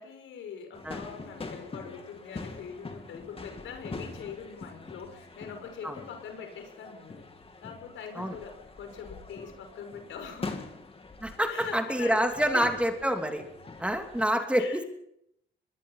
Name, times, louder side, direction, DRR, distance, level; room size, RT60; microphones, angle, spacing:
voice 1, 0.0-7.2 7.6-10.6 11.4-12.7 14.5-14.9, left 7 dB, 80° left, 5 dB, 5.9 m, -42 dB
sound 1, 0.7-14.3, left 3 dB, 30° left, 3.0 m, -44 dB
voice 2, 11.2-13.4 13.8-14.8, equal, 5° right, 5 dB, 2.9 m, -27 dB
23.5 x 21.5 x 5.7 m, 0.76 s
cardioid pair, 90°, 20 cm